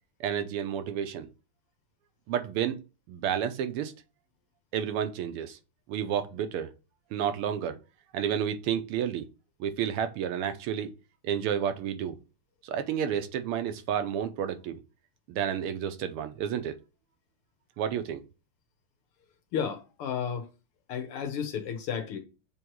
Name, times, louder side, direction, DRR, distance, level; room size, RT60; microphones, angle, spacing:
voice 1, 0.2-1.3 2.3-2.8 3.1-3.9 4.7-5.6 5.9-6.7 7.1-7.8 8.1-9.2 9.6-10.9 11.2-12.2 12.6-14.8 15.3-16.7 17.8-18.2, right 9 dB, 85° right, 1.7 m, -30 dB
voice 2, 19.5-20.5 20.9-22.2, left 7 dB, 85° left, 2.0 m, -32 dB
7.4 x 3.1 x 4.5 m
omnidirectional pair, 2.4 m